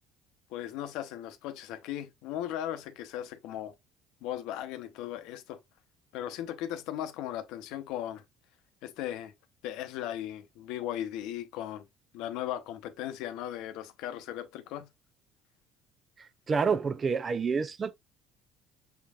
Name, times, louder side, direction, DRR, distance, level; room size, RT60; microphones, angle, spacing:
voice 1, 0.5-3.7 4.2-5.6 6.1-8.2 8.8-9.3 9.6-11.8 12.1-14.9, left 11 dB, 80° left, 0.8 m, -37 dB
voice 2, 16.2-18.0, right 5 dB, 30° right, 0.5 m, -29 dB
6.0 x 3.5 x 2.4 m
cardioid pair, 105°, 0 cm